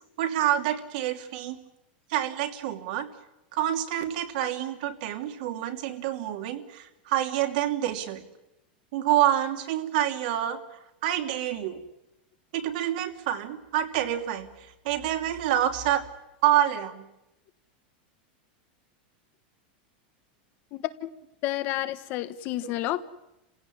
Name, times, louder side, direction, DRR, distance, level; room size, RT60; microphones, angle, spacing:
voice 1, 0.2-1.6 2.1-3.1 3.5-8.2 8.9-10.6 11.0-11.8 12.5-16.0 16.4-17.1, right 12 dB, 60° right, 2.8 m, -27 dB
voice 2, 20.7-21.1 21.4-23.0, left 15 dB, 40° left, 1.2 m, -30 dB
29.0 x 16.5 x 10.0 m
supercardioid pair, 160°, 5 cm